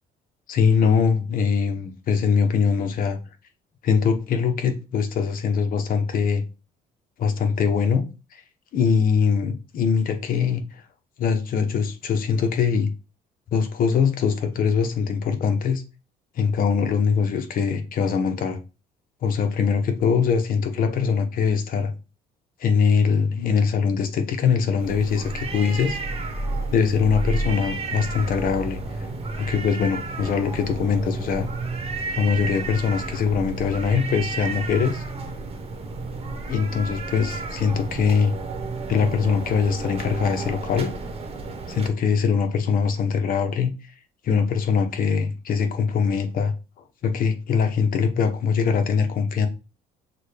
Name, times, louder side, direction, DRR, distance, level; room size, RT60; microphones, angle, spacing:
voice 1, 0.5-3.2 3.8-6.4 7.2-8.0 8.3-8.4 8.7-10.8 11.2-12.9 13.5-15.8 16.4-18.6 19.2-21.9 22.6-26.0 26.7-29.1 29.4-31.5 32.1-35.0 36.5-38.3 38.9-40.9 41.7-43.7 44.2-46.5 47.0-49.5, left 6 dB, 55° left, 0.8 m, -22 dB
sound 1, 24.8-41.9, right 3 dB, 35° right, 1.0 m, -31 dB
6.2 x 2.2 x 3.3 m
cardioid pair, 110°, 17 cm